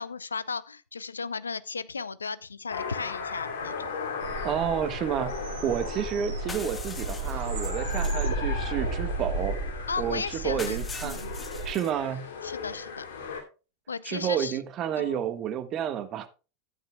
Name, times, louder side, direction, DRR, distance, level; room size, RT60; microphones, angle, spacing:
voice 1, 0.0-3.9 9.9-11.3 12.4-13.1 13.9-14.6 15.0-15.3, left 5 dB, 85° left, 0.5 m, -35 dB
sound 1, 2.7-13.4, left 5 dB, 70° left, 2.5 m, -38 dB
sound 2, 4.2-11.7, right 2 dB, 60° right, 5.4 m, -33 dB
voice 2, 4.4-5.3 5.6-9.6 10.0-11.2 11.6-12.3 14.0-16.3, right 9 dB, 40° right, 1.4 m, -30 dB
sound 3, 6.5-8.2 10.6-11.9, left 4 dB, 20° left, 1.5 m, -42 dB
14.0 x 9.0 x 2.3 m
figure-of-eight pair, 85°, 0 cm